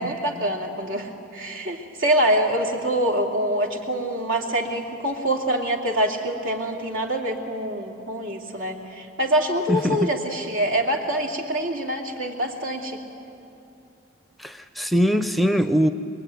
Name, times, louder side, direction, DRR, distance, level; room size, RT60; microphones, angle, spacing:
voice 1, 0.0-13.0, right 1 dB, 80° right, 1 dB, 2.9 m, -25 dB
voice 2, 14.4-15.9, equal, ahead, 9 dB, 0.5 m, -21 dB
24.0 x 22.5 x 9.3 m, 2.9 s
head